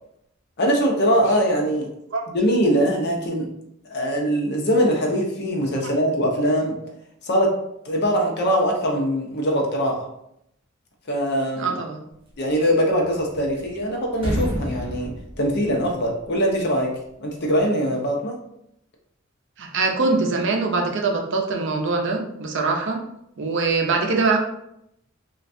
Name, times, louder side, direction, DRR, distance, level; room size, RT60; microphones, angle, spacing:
voice 1, 0.6-1.9 2.3-3.5 3.8-6.8 7.2-7.5 7.8-10.0 11.1-11.8 12.4-16.9 17.2-18.4, equal, 55° left, 0 dB, 0.7 m, -22 dB
voice 2, 11.6-12.0 19.6-23.0 23.4-24.4, right 3 dB, 65° right, 1 dB, 0.5 m, -23 dB
sound 1, 13.0-13.8 14.1-16.2, equal, 25° right, 0.8 m, -29 dB
3.1 x 2.4 x 2.6 m, 0.77 s
head